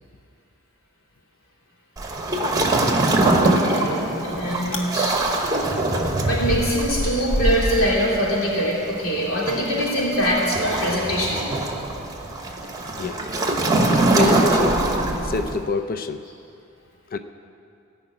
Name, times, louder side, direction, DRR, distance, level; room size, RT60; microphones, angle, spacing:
Waves surf, 2.0-15.6, right 2 dB, 20° right, 1.1 m, -23 dB
voice 1, 3.0-5.2 6.2-11.4, equal, 80° left, -4 dB, 3.2 m, -23 dB
Chewing mastication, 4.2-4.3 4.6-4.9 5.3-9.1 9.4-14.8, equal, 60° left, 1.4 m, -31 dB
voice 2, 13.7-14.8 15.2-16.2 17.1-17.2, left 4 dB, 45° left, 9 dB, 0.5 m, -26 dB
17.5 x 5.9 x 8.7 m, 2.5 s
head